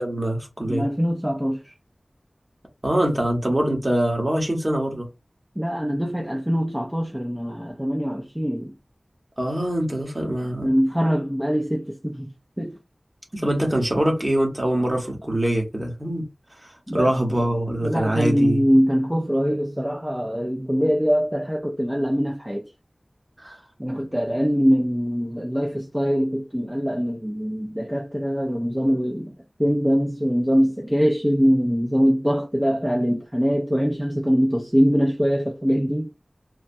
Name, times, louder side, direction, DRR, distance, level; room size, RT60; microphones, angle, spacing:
voice 1, 0.0-0.8 2.8-5.1 9.4-10.7 13.3-16.2 16.6-18.6 23.4-23.6, right 1 dB, 35° right, 1.2 m, -24 dB
voice 2, 0.7-1.7 5.6-8.7 10.6-12.3 12.6-12.8 16.9-17.1 17.8-22.6 23.8-29.3 29.6-36.1, equal, 10° right, 0.4 m, -23 dB
3.2 x 2.1 x 2.6 m
wide cardioid pair, 55°, 0 cm